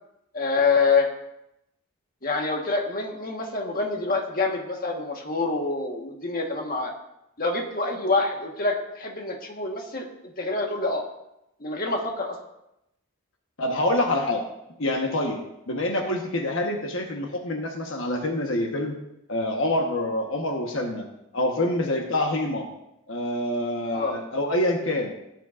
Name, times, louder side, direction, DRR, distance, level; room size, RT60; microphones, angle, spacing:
voice 1, 0.3-1.1 2.2-6.9 7.4-10.0 10.4-11.0 11.6-12.4 23.9-24.2, left 3 dB, 45° left, 1 dB, 1.4 m, -26 dB
voice 2, 13.6-14.4 14.8-15.4 15.7-19.0 19.3-21.0 21.3-22.7 23.1-25.1, left 1 dB, 65° left, 2 dB, 1.2 m, -26 dB
17.0 x 9.0 x 2.5 m, 0.85 s
head